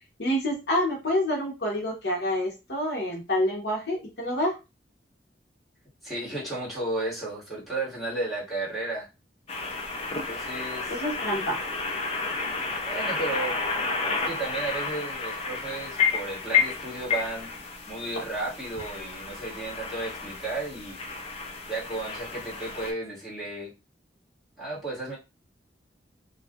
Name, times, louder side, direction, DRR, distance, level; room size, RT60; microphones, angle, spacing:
voice 1, 0.2-4.6 10.9-11.6, left 1 dB, 70° left, -1 dB, 0.8 m, -27 dB
voice 2, 6.0-9.1 10.3-11.0 12.8-13.6 14.2-17.5 17.9-21.0 21.7-23.7 24.6-25.2, right 2 dB, ahead, -10 dB, 1.5 m, -33 dB
sound 1, 9.5-22.9, left 5 dB, 35° left, 0.4 m, -31 dB
2.6 x 2.4 x 2.3 m, 0.26 s
head